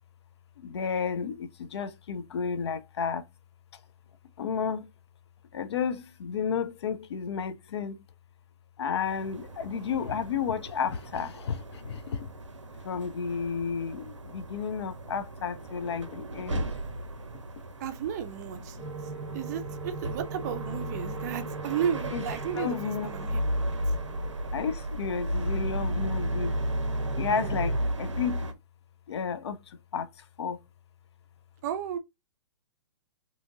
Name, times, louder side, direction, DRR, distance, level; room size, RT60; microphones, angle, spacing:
voice 1, 0.7-3.2 4.4-4.8 5.5-7.9 8.8-11.6 12.9-14.0 14.3-16.6 22.1-22.2 22.6-23.1 24.5-26.5 27.2-27.7 28.0-28.4 29.1-29.6 29.9-30.1 30.4-30.6, left 6 dB, 65° left, 0.4 m, -31 dB
sound 1, 9.0-28.5, equal, 90° right, 0.5 m, -34 dB
voice 2, 17.8-18.8 19.3-22.8 23.0-23.4 27.4-27.5 31.6-32.0, right 8 dB, 35° right, 0.4 m, -33 dB
sound 2, 18.8-27.8, right 5 dB, ahead, 0.8 m, -41 dB
2.7 x 2.4 x 2.6 m
figure-of-eight pair, 120°, 15 cm